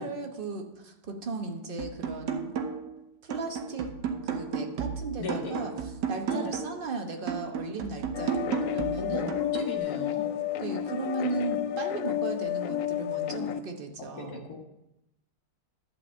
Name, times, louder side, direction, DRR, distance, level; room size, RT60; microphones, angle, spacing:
voice 1, 0.0-2.5 3.2-3.9 4.2-5.7 6.1-9.3 10.6-14.5, right 3 dB, 35° right, 3 dB, 1.0 m, -36 dB
sound 1, 1.8-3.0 3.3-6.8 7.3-9.8, right 6 dB, 70° right, 1.5 m, -33 dB
voice 2, 5.2-5.6 6.3-6.5 9.0-10.3 14.0-14.6, left 4 dB, 55° left, 1 dB, 2.0 m, -36 dB
sound 2, 8.1-13.6, left 11 dB, 75° left, 0.7 m, -31 dB
11.0 x 4.8 x 7.4 m, 0.89 s
omnidirectional pair, 2.0 m